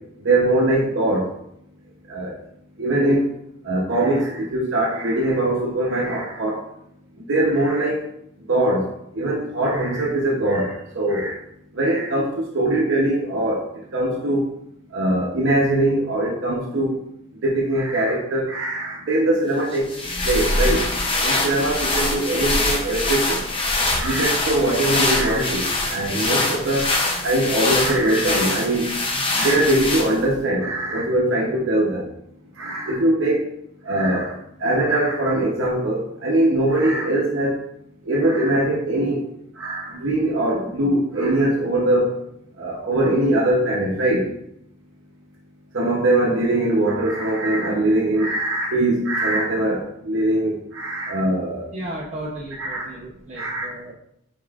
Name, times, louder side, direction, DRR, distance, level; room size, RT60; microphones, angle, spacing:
voice 1, 0.2-1.3 2.1-2.3 2.8-3.3 3.6-6.6 7.3-8.1 8.5-8.9 9.1-11.4 11.7-13.6 13.9-14.5 14.9-17.0 17.4-19.9 20.2-20.8 21.2-23.4 23.9-26.9 27.2-28.9 29.3-32.1 32.6-33.5 33.9-34.3 34.6-37.6 38.1-39.3 39.6-42.2 42.6-44.2 45.7-51.7 52.6-52.9 53.4-53.8, right 1 dB, 70° right, -3 dB, 0.7 m, -21 dB
sound 1, 19.7-30.4, left 2 dB, 25° left, 0.5 m, -23 dB
voice 2, 51.7-53.9, right 1 dB, 35° right, -4 dB, 0.6 m, -34 dB
5.3 x 3.6 x 2.4 m, 0.77 s
head